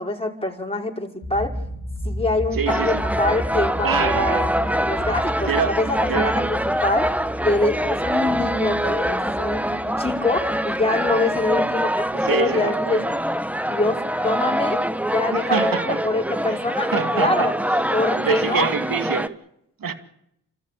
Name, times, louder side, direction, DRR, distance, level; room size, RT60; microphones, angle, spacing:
voice 1, 0.0-1.6 2.0-7.2 7.4-13.1 13.6-14.8 15.1-17.5 17.9-18.7, left 2 dB, 15° left, 5.4 m, -25 dB
sound 1, 1.2-12.5, equal, 60° left, 3.7 m, -33 dB
voice 2, 2.5-3.0 3.8-4.5 5.0-5.1 5.5-5.8 6.1-6.3 12.2-13.1 15.3-16.0 16.5-17.5 18.1-19.4 19.8-19.9, right 6 dB, 55° right, 2.4 m, -26 dB
sound 2, 2.7-19.3, equal, 5° right, 1.4 m, -24 dB
28.0 x 14.0 x 8.6 m
supercardioid pair, 45°, 40 cm